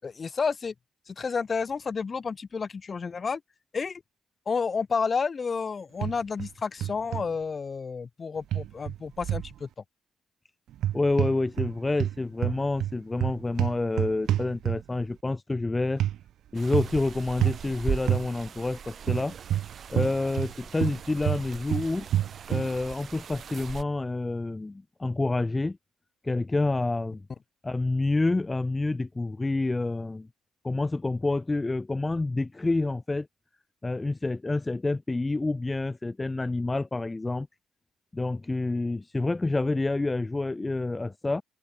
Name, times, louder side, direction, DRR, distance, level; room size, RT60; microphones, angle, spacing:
voice 1, 0.0-0.7 1.1-3.4 3.7-4.0 4.5-9.7, left 5 dB, 35° left, 7.1 m, -30 dB
sound 1, 6.0-6.5 6.8-7.2 8.5-9.5 10.7-11.7 12.0-15.0 16.0-16.2 16.7-17.0 17.4-17.6 18.1-18.3 19.1-20.5 20.8-22.7, right 12 dB, 70° right, 6.0 m, -28 dB
voice 2, 10.9-16.0 16.5-19.3 19.9-22.1 22.5-25.8 26.2-27.2 27.6-30.3 30.6-33.3 33.8-37.5 38.1-41.4, left 2 dB, 20° left, 4.2 m, -28 dB
sound 2, 16.5-23.8, right 7 dB, 50° right, 7.1 m, -39 dB
cardioid pair, 90°, 0 cm